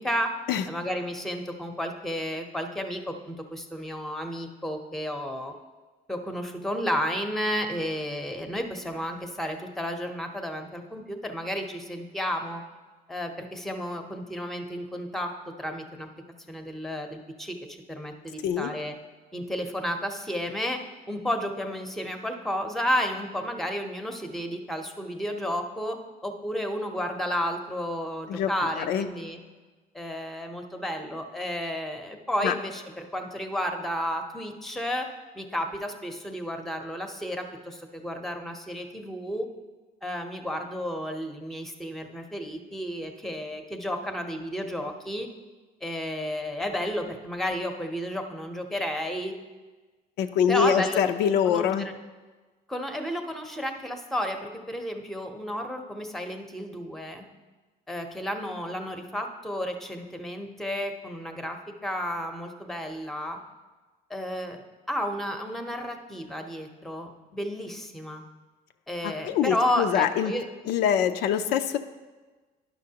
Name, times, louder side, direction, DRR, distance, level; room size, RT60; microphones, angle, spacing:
voice 1, 0.0-0.3 0.7-5.5 6.1-12.6 13.1-15.3 15.6-16.1 16.5-17.6 17.9-19.0 19.3-20.8 21.1-26.0 26.2-29.4 29.9-35.1 35.3-39.5 40.0-45.3 45.8-49.3 50.5-51.0 51.4-51.9 52.7-57.2 57.9-63.4 64.1-68.2 68.9-70.5, equal, ahead, 5 dB, 0.7 m, -32 dB
voice 2, 50.2-51.9 69.0-70.3 70.7-71.8, left 8 dB, 80° left, 7 dB, 0.5 m, -24 dB
10.5 x 5.9 x 2.8 m, 1.3 s
cardioid pair, 110°, 17 cm